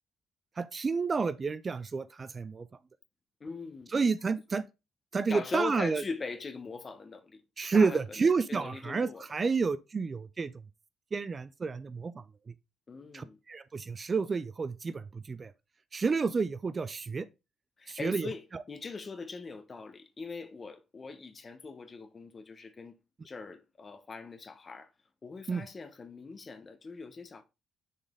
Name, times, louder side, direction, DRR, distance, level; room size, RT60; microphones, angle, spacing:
voice 1, 0.6-2.7 3.9-4.6 5.1-6.0 7.6-10.5 11.1-12.5 13.1-15.5 15.9-17.3 17.9-18.3 18.5-18.6 25.5-25.6, right 4 dB, 35° right, 0.4 m, -30 dB
voice 2, 3.4-3.9 5.3-7.4 7.7-9.3 12.9-13.4 17.8-23.0 23.2-24.9 25.2-27.4, left 4 dB, 35° left, 0.9 m, -41 dB
6.5 x 4.1 x 3.6 m
cardioid pair, 90°, 0 cm